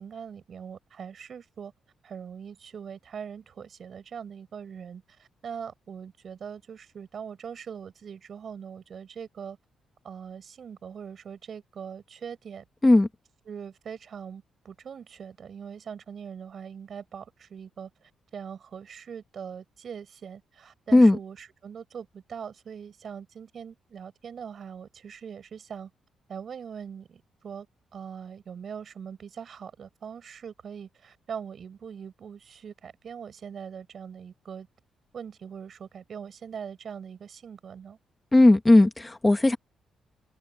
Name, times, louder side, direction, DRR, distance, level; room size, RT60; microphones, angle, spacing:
voice 1, 0.0-1.7 2.0-9.6 10.0-12.6 13.5-25.9 26.3-27.7 27.9-34.7 35.1-38.0, right 7 dB, 45° right, 6.0 m, -41 dB
voice 2, 38.3-39.6, left 2 dB, 15° left, 1.0 m, -17 dB
cardioid pair, 150°, 0 cm